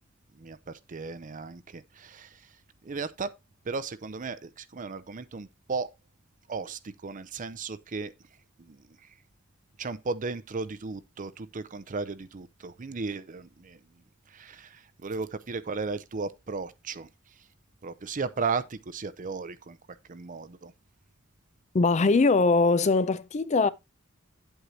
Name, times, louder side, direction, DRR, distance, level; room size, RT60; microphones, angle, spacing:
voice 1, 0.9-2.4 2.8-3.3 3.7-5.9 6.5-8.1 8.7-8.8 9.8-13.8 14.3-17.1 17.8-19.8 20.1-20.7, right 4 dB, 40° right, 0.6 m, -35 dB
voice 2, 21.7-23.7, left 3 dB, 35° left, 0.4 m, -22 dB
9.1 x 8.1 x 2.8 m
head